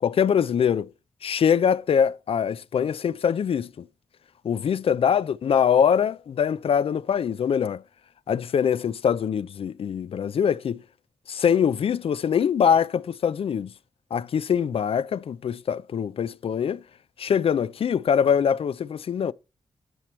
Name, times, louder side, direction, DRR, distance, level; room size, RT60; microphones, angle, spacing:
voice 1, 0.0-0.9 1.2-3.9 4.4-7.8 8.3-10.8 11.3-13.7 14.1-16.8 17.2-19.3, left 7 dB, 65° left, 0.4 m, -23 dB
9.1 x 6.1 x 4.2 m
wide cardioid pair, 110°, 11 cm